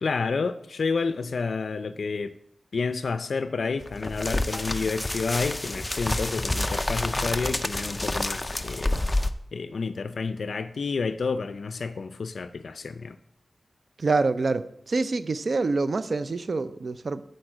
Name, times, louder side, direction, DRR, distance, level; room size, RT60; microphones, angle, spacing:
voice 1, 0.0-2.3 2.7-9.0 9.5-13.2, left 4 dB, 75° left, 12 dB, 0.4 m, -30 dB
sound 1, 3.8-9.3, left 1 dB, 20° left, 0.5 m, -28 dB
voice 2, 14.0-17.2, right 3 dB, 60° right, 13 dB, 0.5 m, -26 dB
9.3 x 4.5 x 7.6 m, 0.74 s
wide cardioid pair, 85°, 0 cm